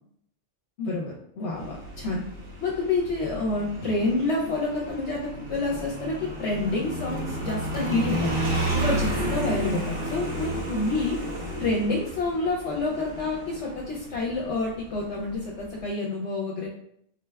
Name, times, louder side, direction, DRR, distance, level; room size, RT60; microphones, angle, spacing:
voice 1, 0.8-2.2 2.6-8.3 8.7-11.2 11.6-16.7, left 2 dB, 65° left, -2 dB, 0.9 m, -28 dB
Motorcycle, 1.5-15.9, right 1 dB, 45° right, 0.4 m, -32 dB
4.0 x 2.3 x 3.3 m, 0.69 s
omnidirectional pair, 1.4 m